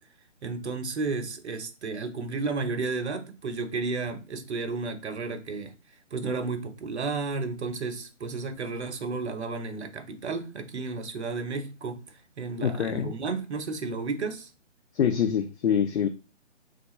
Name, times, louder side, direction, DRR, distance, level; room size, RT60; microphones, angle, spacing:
voice 1, 0.4-5.7 6.1-12.0 12.4-14.5, right 4 dB, 60° right, 0.9 m, -32 dB
voice 2, 12.6-13.2 14.9-16.1, left 8 dB, 60° left, 0.5 m, -25 dB
3.3 x 2.5 x 3.1 m
hypercardioid pair, 155°, 38 cm